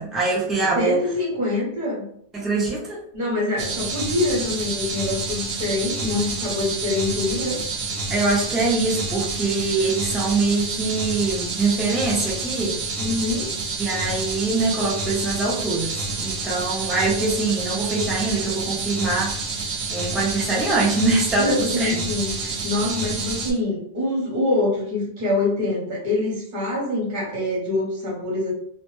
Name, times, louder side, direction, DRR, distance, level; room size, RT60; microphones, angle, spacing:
voice 1, 0.0-1.0 2.3-3.0 8.1-12.8 13.8-19.3 19.9-22.0, right 3 dB, ahead, -5 dB, 0.4 m, -23 dB
voice 2, 0.7-2.0 3.1-7.6 13.0-13.5 21.3-28.5, left 2 dB, 50° right, -3 dB, 1.0 m, -25 dB
sound 1, 3.6-23.5, right 3 dB, 75° right, 0.8 m, -28 dB
2.1 x 2.1 x 3.0 m, 0.67 s
omnidirectional pair, 1.1 m